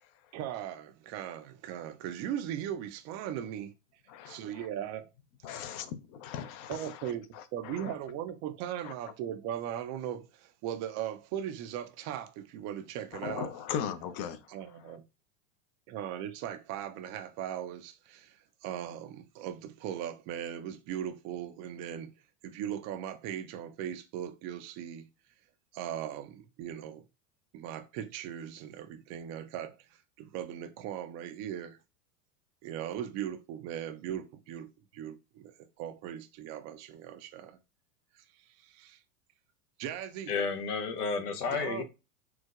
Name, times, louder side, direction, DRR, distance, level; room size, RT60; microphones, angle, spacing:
voice 1, 0.3-3.7 4.3-5.1 5.5-5.7 6.7-7.2 7.5-13.5 14.5-15.0 15.9-22.1 22.4-25.0 25.7-27.0 27.5-29.8 30.2-31.8 32.6-35.5 35.8-37.6 38.6-39.0 39.8-40.3 41.5-41.8, right 10 dB, 35° right, 0.5 m, -38 dB
voice 2, 4.1-4.7 5.4-7.9 8.8-8.9 13.2-14.4, left 8 dB, 45° left, 0.5 m, -39 dB
voice 3, 40.3-41.8, left 5 dB, 85° left, 0.8 m, -31 dB
4.5 x 2.1 x 2.4 m
hypercardioid pair, 105°, 45 cm